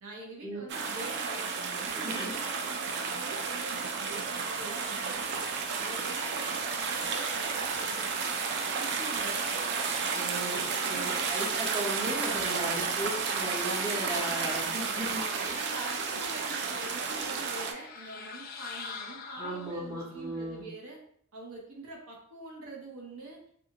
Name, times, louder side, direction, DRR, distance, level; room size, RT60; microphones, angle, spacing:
voice 1, 0.0-5.3 5.8-8.1 8.5-9.4 10.0-10.3 10.8-11.3 13.3-13.5 14.9-21.0 21.3-23.4, right 2 dB, 80° right, -2 dB, 0.7 m, -44 dB
sound 1, 0.7-17.7, right 5 dB, 55° right, 0.3 m, -32 dB
voice 2, 1.9-2.3 10.1-10.6 10.9-15.6 19.4-20.6, right 1 dB, 15° right, -5 dB, 0.7 m, -36 dB
sound 2, 17.5-20.1, left 5 dB, 45° left, 0.3 m, -43 dB
2.5 x 2.4 x 2.8 m, 0.63 s
head